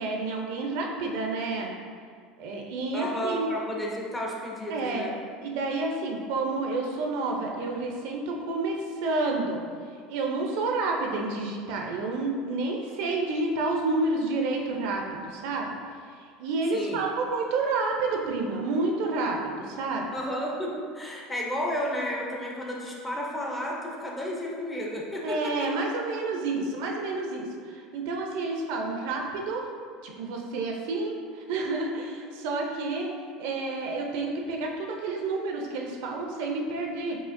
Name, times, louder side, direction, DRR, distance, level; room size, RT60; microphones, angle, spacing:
voice 1, 0.0-1.7 2.4-3.5 4.7-5.1 5.4-9.6 10.1-15.7 16.2-20.1 25.2-29.6 30.0-37.2, right 3 dB, 65° right, 1 dB, 0.5 m, -29 dB
voice 2, 2.9-5.2 16.7-17.1 20.1-25.7, equal, 10° left, -2 dB, 0.4 m, -32 dB
4.8 x 2.8 x 2.5 m, 2.1 s
cardioid pair, 165°, 0 cm